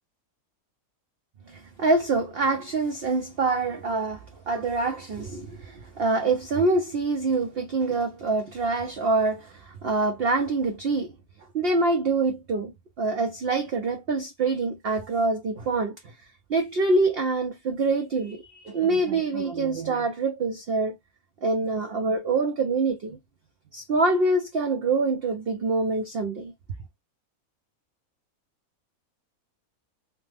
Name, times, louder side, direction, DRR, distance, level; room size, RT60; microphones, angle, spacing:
voice 1, 1.5-11.1 11.5-12.7 13.0-16.0 16.5-21.0 21.4-23.2 23.7-26.5, right 3 dB, 60° right, 0.6 m, -25 dB
3.0 x 2.1 x 3.2 m
omnidirectional pair, 1.5 m